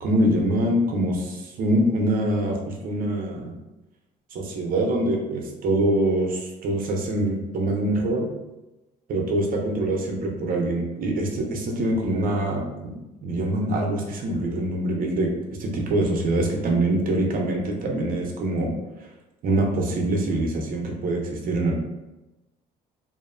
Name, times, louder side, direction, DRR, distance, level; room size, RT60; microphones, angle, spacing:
voice 1, 0.0-3.5 4.3-8.3 9.1-12.9 13.2-15.3 15.6-18.7 19.4-21.8, right 1 dB, 55° right, 0 dB, 0.6 m, -24 dB
2.7 x 2.4 x 2.5 m, 1.0 s
cardioid pair, 110°, 17 cm